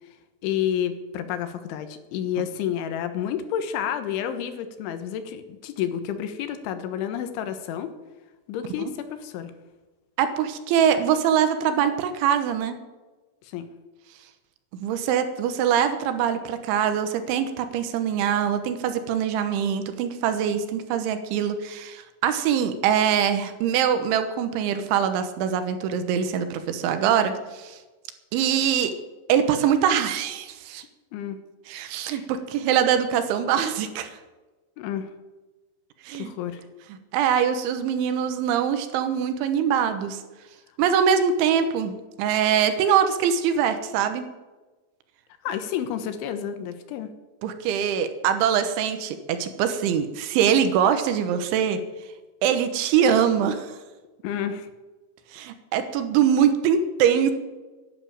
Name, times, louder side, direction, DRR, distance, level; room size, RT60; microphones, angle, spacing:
voice 1, 0.4-7.9 8.5-9.5 13.4-13.7 31.1-31.4 32.1-32.3 34.8-35.1 36.1-36.6 45.4-47.1 54.2-54.7, left 9 dB, 85° left, 9 dB, 3.7 m, -30 dB
voice 2, 10.2-12.8 14.7-27.8 28.3-28.9 29.3-30.8 31.7-34.1 36.1-36.3 37.1-40.2 40.8-44.3 47.4-51.8 52.4-53.7 55.3-57.3, right 8 dB, 90° right, 9 dB, 3.5 m, -23 dB
12.0 x 11.0 x 8.9 m, 1.2 s
omnidirectional pair, 5.4 m